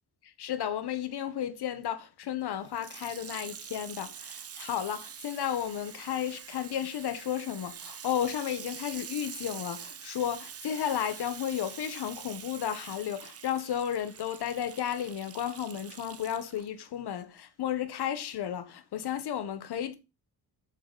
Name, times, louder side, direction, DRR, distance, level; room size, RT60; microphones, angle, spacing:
voice 1, 0.4-20.0, left 10 dB, 75° left, 1.4 m, -33 dB
Water tap faucet / Sink (filling or washing), 2.7-16.7 17.4-17.5, right 8 dB, 40° right, 0.7 m, -45 dB
8.2 x 7.1 x 4.2 m
cardioid pair, 95°, 39 cm